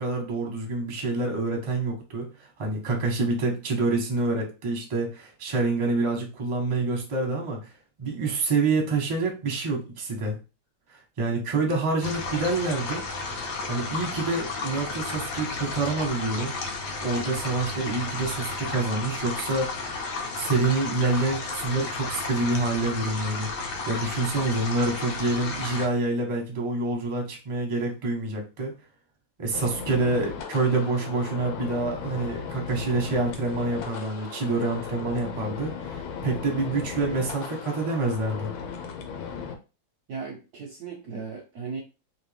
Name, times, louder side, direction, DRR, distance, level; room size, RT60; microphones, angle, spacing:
voice 1, 0.0-7.6 8.0-10.4 10.9-13.0 13.7-16.5 17.0-19.9 20.3-28.7 29.4-38.5, right 3 dB, 35° right, 1 dB, 0.5 m, -27 dB
sound 1, 12.0-25.9, left 3 dB, 65° left, 1.2 m, -33 dB
sound 2, 29.5-39.6, left 6 dB, 85° left, 1.5 m, -36 dB
voice 2, 40.1-41.8, right 5 dB, 70° right, 1 dB, 0.9 m, -36 dB
3.3 x 2.6 x 3.4 m, 0.31 s
omnidirectional pair, 2.2 m